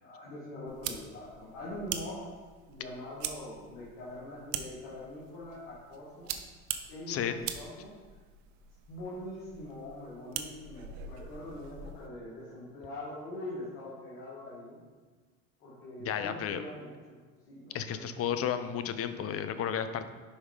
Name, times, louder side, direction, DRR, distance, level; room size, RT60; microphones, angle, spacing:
voice 1, 0.0-2.2 2.7-6.3 6.9-8.0 8.9-14.8 15.6-17.2 17.5-18.2, left 1 dB, 70° left, -7 dB, 2.0 m, -43 dB
sound 1, 0.7-12.1, right 9 dB, 65° right, 0.7 m, -43 dB
voice 2, 7.1-7.4 16.0-16.6 17.7-20.1, left 8 dB, 35° left, 10 dB, 0.6 m, -33 dB
5.5 x 4.8 x 4.9 m, 1.4 s
hypercardioid pair, 85°, 39 cm